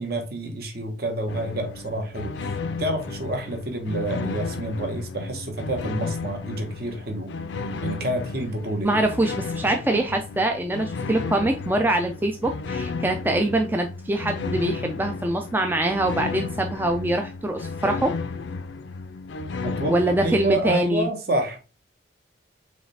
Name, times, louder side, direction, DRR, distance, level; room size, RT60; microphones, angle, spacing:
voice 1, 0.0-7.3 7.8-9.0 19.6-21.6, right 1 dB, 55° right, 1.2 m, -28 dB
sound 1, 1.3-20.7, left 4 dB, 70° left, 0.5 m, -33 dB
voice 2, 8.8-18.1 19.9-21.1, right 1 dB, 10° right, 0.3 m, -24 dB
4.8 x 3.2 x 3.3 m
head